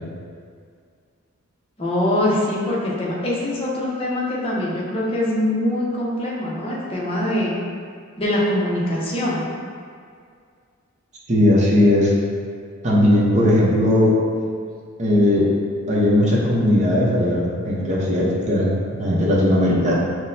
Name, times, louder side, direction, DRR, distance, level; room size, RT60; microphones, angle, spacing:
voice 1, 1.8-7.5 8.2-9.5, left 1 dB, 25° left, -6 dB, 0.7 m, -23 dB
voice 2, 11.3-12.1 12.8-14.2 15.0-15.5 15.9-19.9, left 1 dB, 35° right, -5 dB, 0.7 m, -18 dB
5.9 x 2.1 x 2.7 m, 2.2 s
head